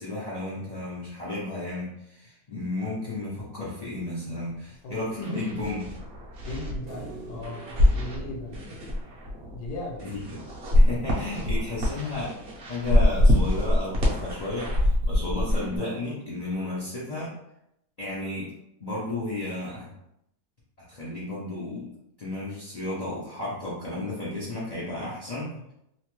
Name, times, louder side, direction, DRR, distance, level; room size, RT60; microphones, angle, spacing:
voice 1, 0.0-5.9 10.0-10.2 10.7-12.4 12.7-17.3 18.0-18.5 18.8-19.9 20.9-21.9 22.2-25.5, left 2 dB, 55° left, -9 dB, 0.4 m, -33 dB
sound 1, 4.9-5.0 5.2-15.8, left 1 dB, 50° right, 0.7 m, -25 dB
voice 2, 5.3-5.6 6.4-8.6 9.5-10.0, left 1 dB, 75° left, -1 dB, 1.3 m, -37 dB
sound 2, 6.9-10.1 12.7-12.8, right 2 dB, 75° right, 1.1 m, -46 dB
3.0 x 2.2 x 3.0 m, 0.80 s
omnidirectional pair, 1.8 m